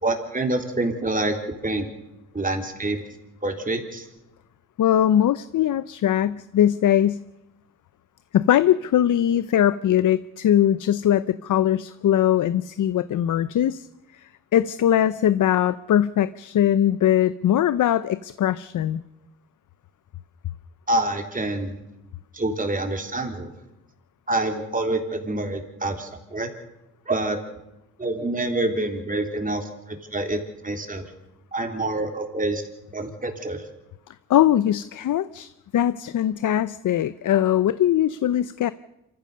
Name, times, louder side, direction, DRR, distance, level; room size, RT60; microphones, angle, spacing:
voice 1, 0.0-1.4 1.6-1.9 2.3-3.0 3.4-4.1 20.9-21.8 22.3-23.5 24.3-26.5 27.1-27.4 28.0-31.0 31.5-32.6 32.9-33.6, right 2 dB, 25° right, 3 dB, 3.6 m, -26 dB
voice 2, 4.8-7.2 8.3-13.9 14.1-19.0 34.3-38.7, left 11 dB, 70° left, 15 dB, 0.7 m, -21 dB
26.5 x 15.0 x 6.7 m, 0.94 s
cardioid pair, 80°, 32 cm